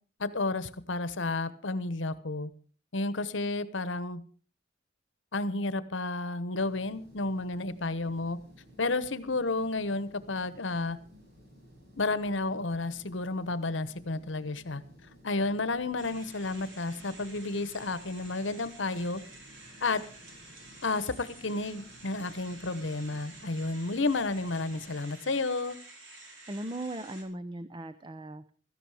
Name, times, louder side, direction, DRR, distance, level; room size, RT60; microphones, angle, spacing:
voice 1, 0.2-2.5 2.9-4.2 5.3-8.4 8.8-11.0 12.0-14.8 15.2-19.2 19.8-20.0 20.8-25.8, left 3 dB, 70° left, 15 dB, 1.1 m, -31 dB
sound 1, 6.6-24.9, equal, 60° right, 5.6 m, -56 dB
sound 2, 16.0-27.2, right 2 dB, 80° right, 4.7 m, -51 dB
voice 2, 26.5-28.5, right 1 dB, 25° right, 12 dB, 0.6 m, -38 dB
16.5 x 14.0 x 4.9 m, 0.38 s
head